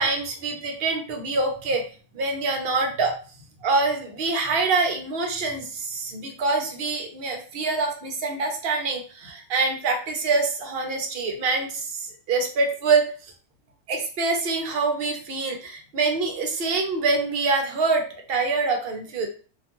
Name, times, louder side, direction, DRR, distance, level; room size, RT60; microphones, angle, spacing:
voice 1, 0.0-1.8 2.1-3.2 3.6-13.3 13.9-19.3, right 3 dB, 60° right, 4 dB, 0.8 m, -25 dB
2.4 x 2.2 x 2.9 m, 0.39 s
omnidirectional pair, 1.2 m